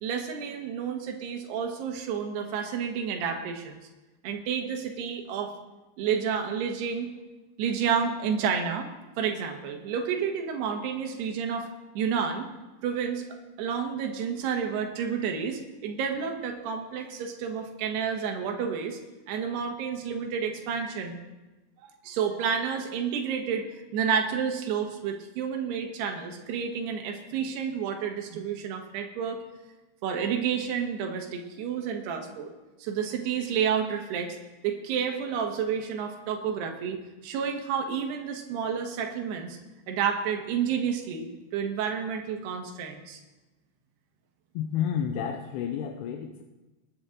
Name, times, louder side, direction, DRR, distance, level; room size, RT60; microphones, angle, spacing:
voice 1, 0.0-3.8 4.2-5.5 6.0-7.1 7.6-8.9 9.2-11.7 11.9-12.5 12.8-19.0 19.3-21.2 21.8-29.4 30.0-32.5 32.8-34.4 34.6-37.0 37.2-39.6 39.9-43.2, right 7 dB, 75° right, 3 dB, 3.4 m, -30 dB
voice 2, 44.5-46.4, left 8 dB, 85° left, 4 dB, 2.9 m, -30 dB
20.0 x 9.4 x 3.8 m, 1.1 s
omnidirectional pair, 4.9 m